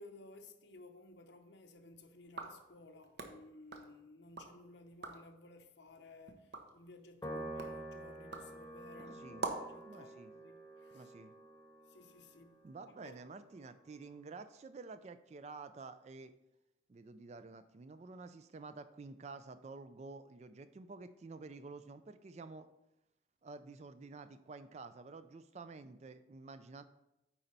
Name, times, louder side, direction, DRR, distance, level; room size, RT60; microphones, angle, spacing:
voice 1, 0.0-11.1 11.9-13.2, left 2 dB, 65° left, 0.7 m, -57 dB
sound 1, 2.2-4.6 4.9-5.4 5.8-9.8, right 3 dB, 60° right, 0.9 m, -47 dB
Piano, 7.2-13.8, right 1 dB, 15° left, 0.9 m, -49 dB
voice 2, 9.0-9.5 9.9-10.3 10.9-11.3 12.6-16.3 16.9-22.7 23.4-26.8, right 3 dB, 35° right, 0.3 m, -50 dB
9.0 x 4.4 x 4.0 m
head